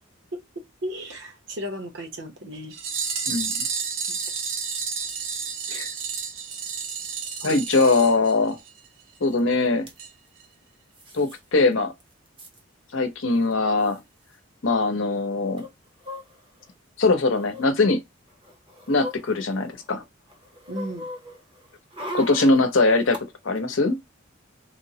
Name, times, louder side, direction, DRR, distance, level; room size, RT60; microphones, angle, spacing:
voice 1, 0.8-2.7 4.1-4.3 20.7-21.1, equal, 60° right, 0.8 m, -34 dB
sound 1, 2.7-8.9 9.2-9.3 9.5-9.6 10.0-10.1 10.4-10.5, right 6 dB, 90° right, 0.6 m, -31 dB
voice 2, 3.3-3.7 5.7-5.9 7.4-8.6 9.2-9.9 11.1-11.9 12.9-14.0 14.6-15.6 17.0-18.0 18.9-20.0 22.1-23.2 23.4-24.0, left 3 dB, 75° left, 0.7 m, -21 dB
sound 2, 9.4-9.5 9.7-10.0 10.9-11.4 11.7-11.8 12.0-12.6 13.5-13.6 13.8-14.0 15.6-16.7 17.3-17.7 18.3-19.9 20.3-23.2 23.6-23.7, left 1 dB, 25° right, 0.6 m, -39 dB
3.1 x 2.1 x 2.7 m
head